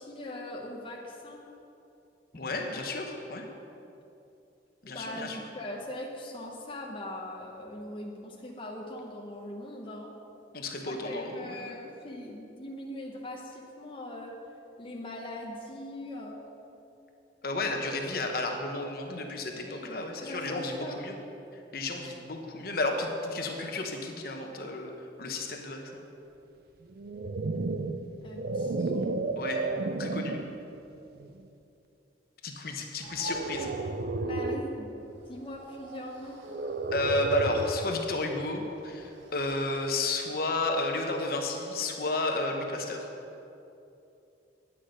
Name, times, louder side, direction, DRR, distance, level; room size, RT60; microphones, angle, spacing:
voice 1, 0.0-1.4 2.3-2.4 4.9-10.1 10.8-14.3 14.8-16.4 19.7-19.9 20.2-21.1 28.2-29.1 34.2-34.9 35.3-36.4, left 1 dB, 30° left, -1 dB, 0.9 m, -41 dB
voice 2, 2.4-3.5 4.8-5.4 10.5-11.8 17.4-21.2 21.5-26.0 29.4-29.7 30.0-30.4 32.4-33.7 36.9-43.1, left 2 dB, 55° left, 3 dB, 1.0 m, -32 dB
sound 1, 26.9-30.6 31.2-31.5 33.2-34.8 36.4-37.9, right 3 dB, 55° right, 0.5 m, -32 dB
sound 2, 33.0-40.0, right 1 dB, 80° right, 1.0 m, -47 dB
9.8 x 8.4 x 5.1 m, 2.8 s
head